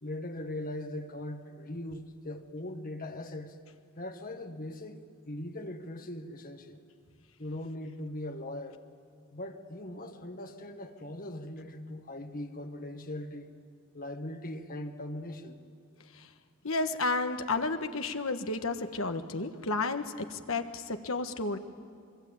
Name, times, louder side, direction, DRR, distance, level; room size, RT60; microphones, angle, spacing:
voice 1, 0.0-3.6 4.0-6.8 7.4-8.8 9.3-13.5 13.9-15.6, left 1 dB, 40° left, 6 dB, 1.6 m, -40 dB
voice 2, 16.6-21.6, left 3 dB, 75° left, 7 dB, 1.5 m, -32 dB
26.0 x 23.0 x 8.8 m, 2.4 s
head